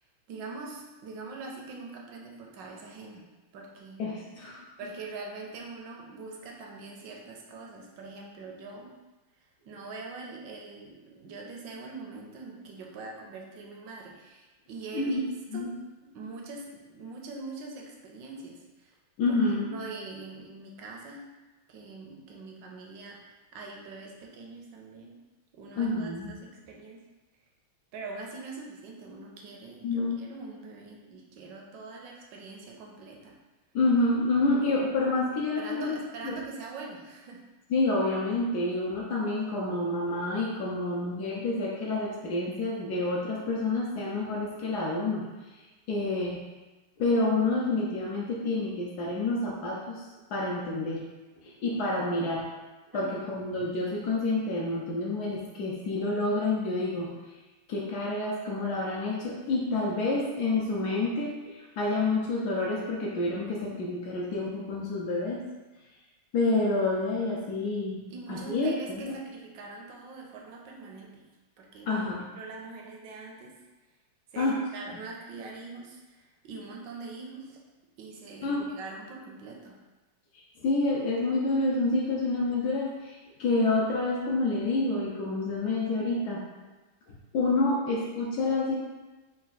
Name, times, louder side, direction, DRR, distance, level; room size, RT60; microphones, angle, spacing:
voice 1, 0.3-3.3 3.5-4.0 4.8-8.9 9.6-15.2 15.5-15.7 16.1-18.9 19.3-19.4 19.7-21.2 21.7-25.2 25.5-26.4 26.6-27.0 27.9-33.3 35.6-37.4 52.9-53.4 68.1-71.3 71.6-72.0 72.4-73.5 74.3-77.6 78.0-79.8, right 3 dB, 75° right, -1 dB, 1.1 m, -43 dB
voice 2, 4.0-4.6 14.9-15.2 15.5-15.7 19.2-19.8 25.8-26.3 29.8-30.2 33.7-35.8 36.2-36.3 37.7-45.3 45.5-45.6 45.9-46.4 47.0-50.1 50.3-51.0 51.4-52.5 52.9-57.1 57.7-65.4 66.3-68.0 68.3-69.1 71.9-72.2 74.4-74.6 78.4-78.7 80.6-86.4 87.1-88.7, left 2 dB, 90° left, -3 dB, 0.8 m, -28 dB
4.0 x 2.3 x 4.0 m, 1.2 s
omnidirectional pair, 2.3 m